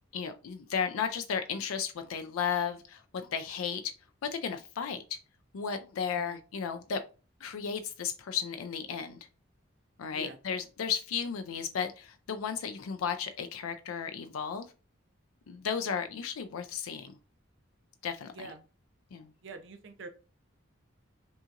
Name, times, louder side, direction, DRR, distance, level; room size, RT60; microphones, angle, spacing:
voice 1, 0.1-3.8 4.2-5.2 5.5-7.0 7.4-9.2 10.0-14.7 15.5-17.1 18.0-18.5 19.1-19.3, left 7 dB, 90° left, 0.4 m, -34 dB
voice 2, 10.0-10.4 18.3-18.6 19.4-20.1, right 3 dB, 60° right, 0.6 m, -45 dB
5.4 x 2.8 x 2.5 m
head